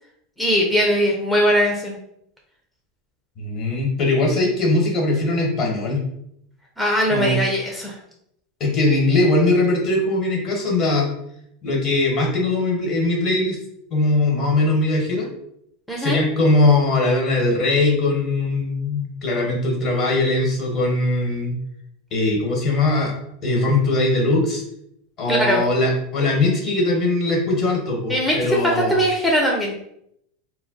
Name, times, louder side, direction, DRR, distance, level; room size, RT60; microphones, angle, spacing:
voice 1, 0.4-2.0 6.8-8.0 15.9-16.2 25.3-25.6 28.1-29.8, equal, ahead, -2 dB, 0.6 m, -20 dB
voice 2, 3.4-6.0 7.1-7.3 8.6-11.1 11.6-13.6 13.9-15.3 16.0-21.5 22.1-23.1 23.4-24.6 25.2-29.0, left 2 dB, 45° left, -1 dB, 1.2 m, -20 dB
2.2 x 2.1 x 3.9 m, 0.75 s
hypercardioid pair, 95°, 0 cm